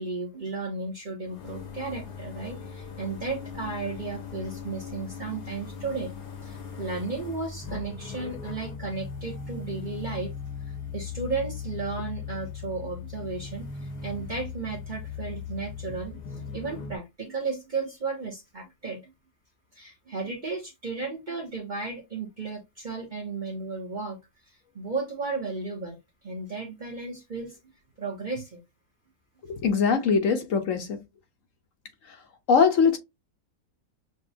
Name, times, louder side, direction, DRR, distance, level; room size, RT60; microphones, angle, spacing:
voice 1, 0.0-6.1 6.4-10.3 10.9-16.2 16.5-19.0 19.7-24.2 24.7-26.0 26.2-27.6 28.0-28.6, right 4 dB, 35° right, 0.8 m, -34 dB
sound 1, 1.2-17.0, left 5 dB, 90° left, 1.7 m, -38 dB
voice 2, 29.6-31.0 32.5-33.0, left 5 dB, 65° left, 1.0 m, -21 dB
6.1 x 2.2 x 2.7 m
omnidirectional pair, 1.7 m